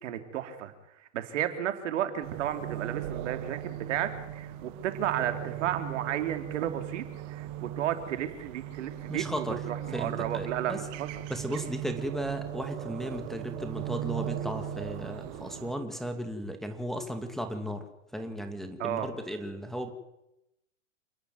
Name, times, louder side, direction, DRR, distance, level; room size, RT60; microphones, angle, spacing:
voice 1, 0.0-11.2 18.8-19.1, right 10 dB, 70° right, 8 dB, 3.1 m, -33 dB
sound 1, 2.2-15.7, right 12 dB, 45° right, 2.0 m, -38 dB
voice 2, 9.1-9.6 9.9-10.8 11.3-17.8 18.1-19.9, equal, ahead, 4 dB, 2.4 m, -35 dB
28.5 x 11.0 x 9.4 m, 0.89 s
hypercardioid pair, 120°, 38 cm